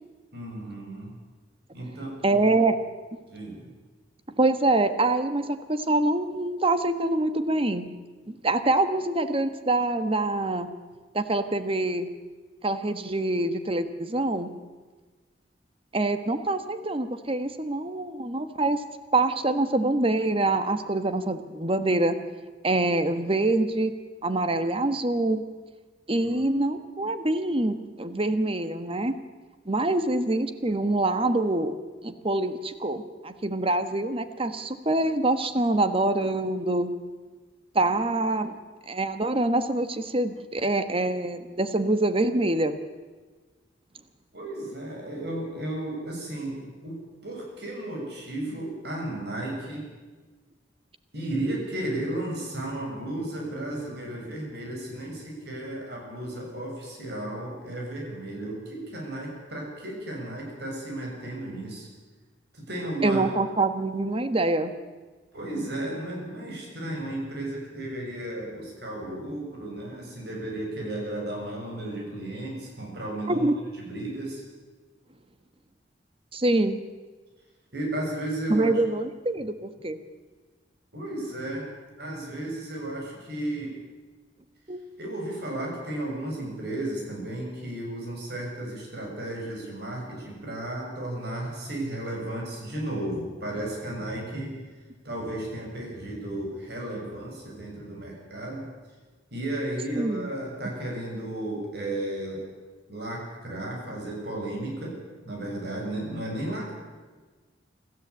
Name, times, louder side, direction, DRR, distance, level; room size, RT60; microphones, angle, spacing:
voice 1, 0.3-1.1 1.7-2.4 3.3-3.7 29.9-30.1 44.3-49.9 51.1-61.9 62.5-63.3 65.3-73.5 73.8-74.4 77.7-78.7 80.9-81.7 82.0-83.7 85.0-94.6 95.0-98.7 99.3-102.4 102.9-105.0 105.2-106.7, right 1 dB, 65° right, -1 dB, 7.4 m, -34 dB
voice 2, 2.2-2.8 4.4-7.9 8.3-10.7 11.1-12.1 12.6-14.5 15.9-18.8 19.1-22.2 22.6-23.9 24.2-25.4 26.1-29.2 29.7-31.7 32.0-36.9 37.7-38.6 38.9-42.8 63.0-64.7 73.3-73.5 76.3-76.8 78.5-80.0 84.7-84.8 99.9-100.3, right 2 dB, 30° right, 10 dB, 1.4 m, -25 dB
26.0 x 14.0 x 8.3 m, 1.3 s
head